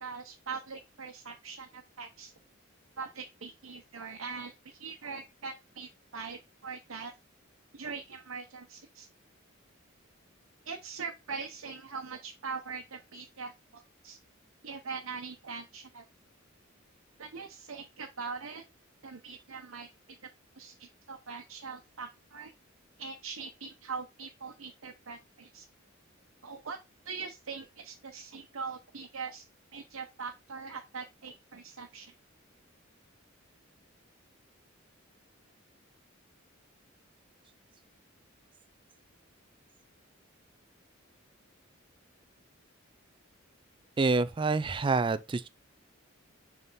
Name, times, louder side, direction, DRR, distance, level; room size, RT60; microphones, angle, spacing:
voice 1, 0.0-2.3 3.0-7.1 7.7-9.1 10.7-14.2 14.6-16.0 17.2-18.6 19.0-19.9 20.6-22.5 23.0-25.6 26.4-26.8 27.0-29.4 29.7-32.1, right 5 dB, 80° right, 0.9 m, -42 dB
voice 2, 44.0-45.5, right 3 dB, 25° right, 0.4 m, -27 dB
6.9 x 3.5 x 4.1 m
head